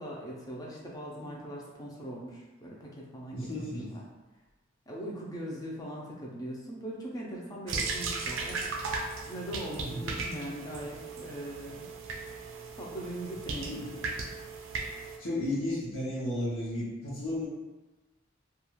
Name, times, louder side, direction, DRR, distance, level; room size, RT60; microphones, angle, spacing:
voice 1, 0.0-4.1 4.9-8.7 9.3-11.9 12.8-13.9, equal, 20° left, -3 dB, 0.5 m, -40 dB
voice 2, 3.3-3.9 9.8-10.0 13.7-14.0 15.2-17.5, left 1 dB, 80° left, -8 dB, 0.8 m, -33 dB
sound 1, 7.7-15.2, right 4 dB, 80° right, 0.4 m, -37 dB
2.4 x 2.4 x 3.0 m, 1.1 s
head